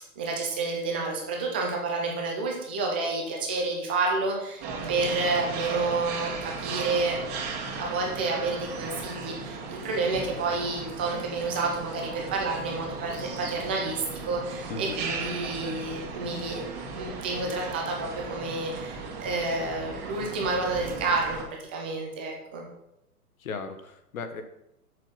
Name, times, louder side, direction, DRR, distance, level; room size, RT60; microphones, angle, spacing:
voice 1, 0.2-4.6 4.9-7.2 7.7-16.7 16.9-21.4 21.7-22.6, right 3 dB, 10° right, 0 dB, 0.3 m, -29 dB
sound 1, 4.6-21.4, right 4 dB, 35° right, 2.0 m, -36 dB
voice 2, 23.4-24.4, left 5 dB, 65° left, 8 dB, 1.3 m, -36 dB
6.6 x 6.4 x 5.6 m, 0.85 s
hypercardioid pair, 120°, 45 cm